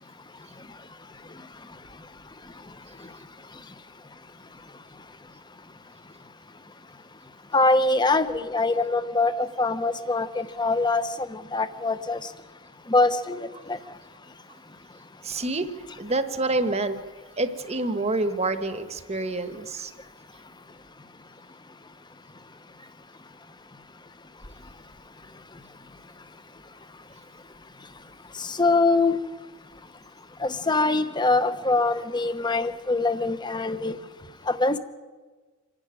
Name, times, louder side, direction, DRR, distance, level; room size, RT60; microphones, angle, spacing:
voice 1, 7.5-12.2 12.9-13.8 28.4-29.2 30.4-34.0 34.5-34.8, left 3 dB, 20° left, 12 dB, 1.0 m, -23 dB
voice 2, 15.2-15.7 16.0-17.0 17.4-19.9, right 2 dB, 30° right, 10 dB, 1.2 m, -27 dB
26.5 x 11.5 x 9.8 m, 1.4 s
head